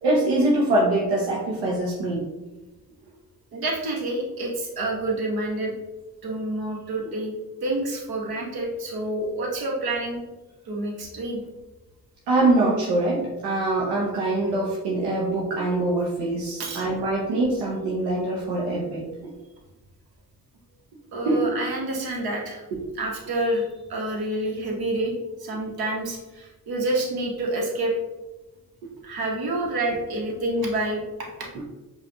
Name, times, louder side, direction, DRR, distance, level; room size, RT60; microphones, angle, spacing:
voice 1, 0.0-2.2 12.3-19.1 21.2-21.4, right 2 dB, 90° right, -4 dB, 0.7 m, -23 dB
voice 2, 3.5-5.7 6.2-7.3 7.6-10.2 10.6-11.4 16.6-16.9 21.1-22.6 23.0-25.1 25.4-27.9 29.0-31.0 31.4-31.5, right 1 dB, 65° right, -1 dB, 1.1 m, -28 dB
5.0 x 2.4 x 2.8 m, 1.1 s
supercardioid pair, 45°, 40 cm